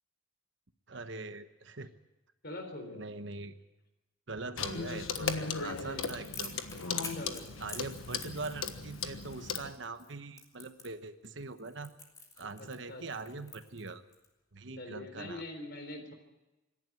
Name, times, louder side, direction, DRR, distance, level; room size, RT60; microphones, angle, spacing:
voice 1, 0.9-1.9 2.9-3.6 4.3-6.6 7.6-11.9 12.4-14.0 14.5-15.4, right 3 dB, 60° right, 9 dB, 1.1 m, -42 dB
voice 2, 2.4-3.1 5.7-6.2 7.2-7.8 12.6-13.4 14.8-16.1, left 2 dB, 50° left, 6 dB, 3.9 m, -44 dB
Clock, 4.6-9.7, left 5 dB, 85° left, 1.4 m, -37 dB
Crackle, 6.0-14.3, left 3 dB, 15° left, 2.7 m, -48 dB
26.0 x 11.5 x 9.3 m, 1.0 s
head